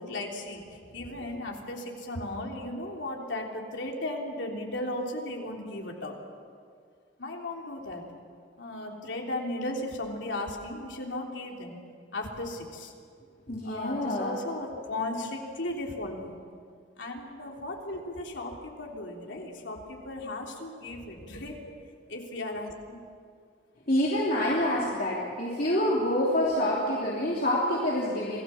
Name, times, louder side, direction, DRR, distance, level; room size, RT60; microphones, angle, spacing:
voice 1, 0.0-6.2 7.2-8.0 8.6-11.8 12.1-12.9 13.6-16.4 17.0-21.7 22.1-23.0, left 1 dB, 75° left, 0 dB, 3.4 m, -36 dB
voice 2, 13.5-14.3 23.9-28.4, left 1 dB, 50° left, -5 dB, 3.0 m, -27 dB
27.0 x 18.0 x 7.2 m, 2.2 s
head